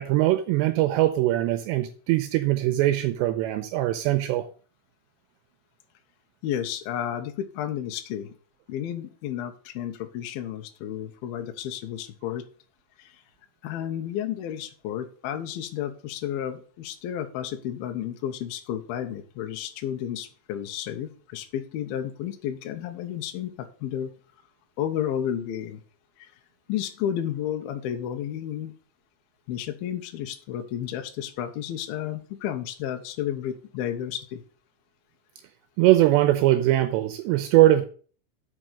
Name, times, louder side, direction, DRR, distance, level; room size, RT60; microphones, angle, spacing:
voice 1, 0.0-4.5 35.8-37.8, right 15 dB, 85° right, 9 dB, 2.7 m, -21 dB
voice 2, 6.4-8.3 8.7-12.5 13.0-13.2 13.6-24.1 24.8-25.8 26.2-26.3 26.7-28.7 29.5-34.4, left 10 dB, 75° left, 6 dB, 2.4 m, -32 dB
6.3 x 6.1 x 6.7 m, 0.41 s
omnidirectional pair, 5.3 m